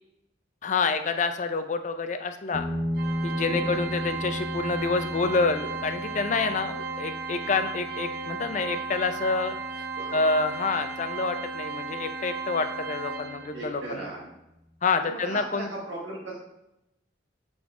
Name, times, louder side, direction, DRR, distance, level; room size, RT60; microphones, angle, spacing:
voice 1, 0.6-2.7 3.2-9.8 10.1-14.1 14.8-15.7, left 4 dB, 40° left, 8 dB, 0.5 m, -28 dB
sound 1, 2.5-11.5, equal, 20° left, 0.8 m, -35 dB
Organ, 3.0-13.7, right 4 dB, 55° right, 0.6 m, -35 dB
voice 2, 3.5-3.8 7.3-7.4 10.0-10.2 13.5-14.3 15.1-16.4, right 2 dB, 90° right, -5 dB, 1.4 m, -38 dB
5.8 x 3.8 x 4.8 m, 0.88 s
head